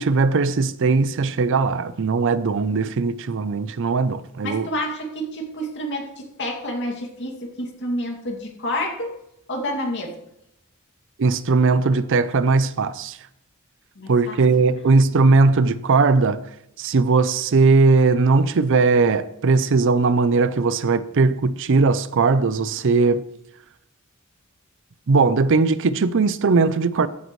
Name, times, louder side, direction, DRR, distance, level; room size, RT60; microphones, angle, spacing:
voice 1, 0.0-4.7 11.2-13.2 14.1-16.4 16.8-23.2 25.1-27.1, right 4 dB, 60° right, 0.5 m, -19 dB
voice 2, 4.4-9.1 9.5-10.1 14.0-14.4, equal, 55° left, 2.3 m, -29 dB
14.5 x 9.3 x 3.1 m
head